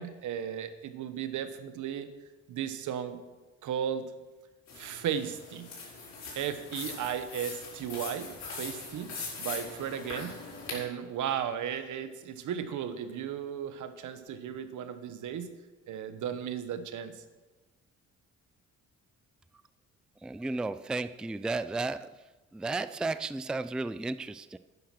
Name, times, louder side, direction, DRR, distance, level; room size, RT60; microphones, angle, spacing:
voice 1, 0.0-2.1 2.5-3.2 3.6-4.1 4.7-5.7 6.3-9.1 9.4-15.5 15.9-17.1, right 9 dB, 75° right, 10 dB, 1.2 m, -35 dB
sound 1, 4.7-10.8, left 4 dB, 60° left, 5.0 m, -41 dB
voice 2, 20.2-22.1 22.5-24.6, right 3 dB, 5° right, 14 dB, 0.3 m, -33 dB
10.5 x 9.9 x 5.9 m, 1.2 s
cardioid pair, 90°, 30 cm